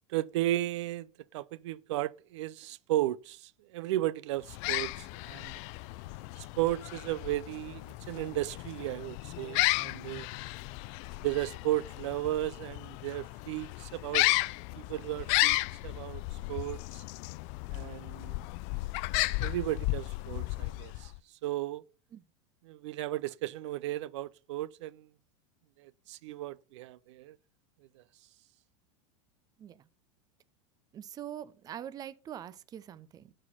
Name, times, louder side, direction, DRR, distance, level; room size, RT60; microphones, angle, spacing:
voice 1, 0.1-1.1 1.3-5.6 6.4-10.3 11.2-14.3 14.8-15.6 15.8-17.0 17.7-18.4 19.4-21.1 21.4-21.8 22.6-25.1 25.8-27.4 28.0-28.1, right 15 dB, 70° right, 0.5 m, -34 dB
sound 1, 4.4-21.2, left 21 dB, 50° left, 0.4 m, -34 dB
voice 2, 30.9-33.3, right 10 dB, 25° right, 0.6 m, -43 dB
12.0 x 4.4 x 5.7 m
supercardioid pair, 135°, 16 cm